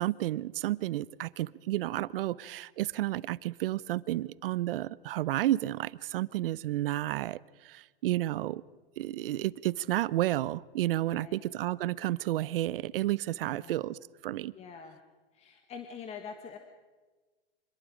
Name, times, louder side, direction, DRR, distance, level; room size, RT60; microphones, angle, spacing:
voice 1, 0.0-8.6 9.0-14.5, right 15 dB, 70° right, 0.7 m, -31 dB
voice 2, 11.1-11.4 13.4-13.8 14.5-15.0 15.3-16.6, left 6 dB, 20° left, 1.5 m, -45 dB
26.0 x 20.0 x 5.1 m
hypercardioid pair, 140°, 30 cm